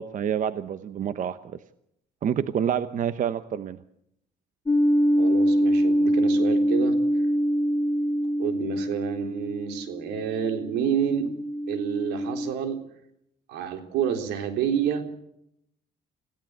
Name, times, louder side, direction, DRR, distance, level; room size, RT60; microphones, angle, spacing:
voice 1, 0.0-1.4 2.2-3.8, right 8 dB, 50° right, 12 dB, 1.0 m, -27 dB
sound 1, 4.7-12.5, equal, 20° left, 1.9 m, -24 dB
voice 2, 5.1-6.9 8.4-11.3 11.7-12.8 13.5-15.1, right 8 dB, 85° right, 6 dB, 3.8 m, -28 dB
25.5 x 16.5 x 8.0 m, 0.75 s
cardioid pair, 110°, 17 cm